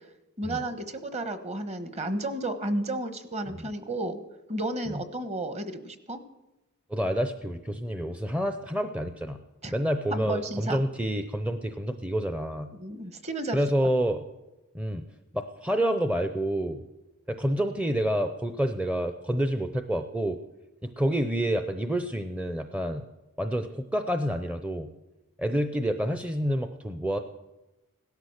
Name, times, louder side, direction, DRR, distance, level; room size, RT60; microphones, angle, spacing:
voice 1, 0.4-4.2 4.5-6.2 9.6-9.7 10.1-10.8 12.8-13.6, right 1 dB, 30° right, 10 dB, 1.2 m, -32 dB
voice 2, 6.9-9.4 9.7-12.7 13.5-14.2 14.7-15.0 15.3-16.8 17.3-20.4 20.8-23.0 23.4-24.9 25.4-27.2, equal, 5° right, 7 dB, 0.6 m, -28 dB
17.0 x 12.5 x 6.5 m, 1.0 s
head